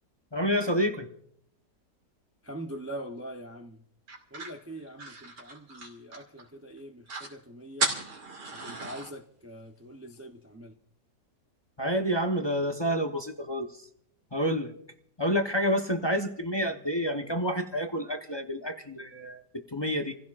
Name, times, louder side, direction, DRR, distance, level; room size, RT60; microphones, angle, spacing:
voice 1, 0.3-1.1 11.8-13.9 14.3-14.7 15.2-20.1, equal, 20° left, 0.7 m, -29 dB
voice 2, 2.4-3.9 4.3-8.0 8.5-10.8, right 1 dB, 25° right, 0.3 m, -43 dB
sound 1, 4.1-6.5 6.8-6.9 7.1-7.3 7.8-9.1, right 3 dB, 70° right, 2.9 m, -35 dB
28.5 x 15.5 x 2.5 m
omnidirectional pair, 1.9 m